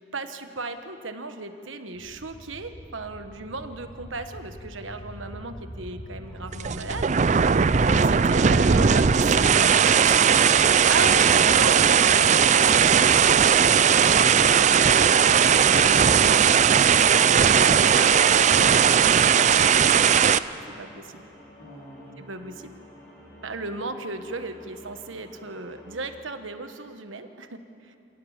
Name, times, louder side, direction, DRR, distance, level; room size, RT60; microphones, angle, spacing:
voice 1, 0.1-7.2 7.9-10.4 10.9-16.2 17.1-20.4 20.8-21.2 22.2-22.7 23.4-28.0, right 3 dB, 85° right, 8 dB, 1.3 m, -36 dB
sound 1, 1.9-13.3, equal, 60° left, 7.4 m, -42 dB
sound 2, 6.2-26.0, equal, 15° left, 7.9 m, -49 dB
voice 2, 6.5-7.0 7.7-8.2 9.0-9.8 15.7-17.2 21.6-22.2, left 1 dB, 90° left, -7 dB, 3.8 m, -42 dB
sound 3, 6.5-20.4, right 7 dB, 35° right, 0.4 m, -18 dB
26.5 x 17.5 x 7.4 m, 2.7 s
head